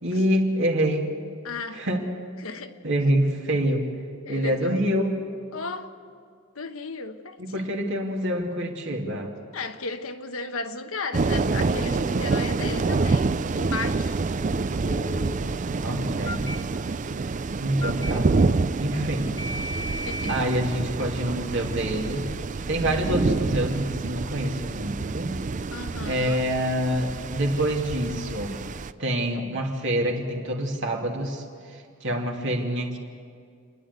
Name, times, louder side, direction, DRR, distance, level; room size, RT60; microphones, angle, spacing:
voice 1, 0.0-1.1 1.7-2.0 2.8-3.9 4.3-5.2 7.4-9.3 15.8-16.5 17.6-18.3 18.8-19.3 20.3-22.3 22.7-25.3 26.0-28.5 29.0-33.0, right 1 dB, 60° right, 2.6 m, -26 dB
voice 2, 1.4-1.9 2.4-2.8 4.3-4.8 5.5-6.0 6.5-7.8 9.5-14.2 20.0-20.4 25.7-26.4, left 4 dB, 80° left, 1.2 m, -35 dB
sound 1, 11.1-28.9, right 3 dB, 35° right, 0.4 m, -27 dB
Telephone, 11.4-11.9 14.9-15.4 16.3-16.6 17.8-18.1 19.4-20.4, left 1 dB, 20° left, 1.5 m, -35 dB
29.0 x 11.0 x 8.1 m
head